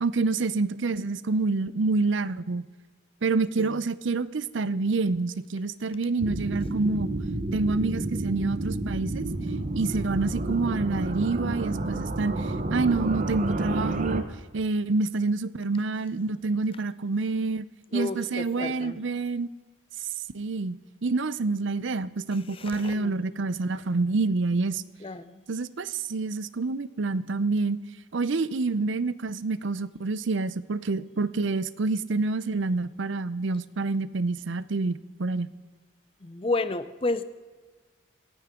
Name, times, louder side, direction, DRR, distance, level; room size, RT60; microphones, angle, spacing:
voice 1, 0.0-2.6 3.2-7.1 7.5-9.3 9.8-14.2 14.5-17.7 17.9-19.5 20.3-20.8 21.0-24.8 25.5-27.8 28.1-35.5, right 3 dB, 70° right, 16 dB, 0.6 m, -27 dB
sound 1, 6.2-14.2, right 2 dB, 40° right, 0.9 m, -30 dB
voice 2, 17.9-19.0 22.6-23.2 25.0-25.4 36.2-37.2, left 2 dB, 25° left, 13 dB, 0.5 m, -31 dB
26.5 x 9.3 x 3.7 m, 1.4 s
head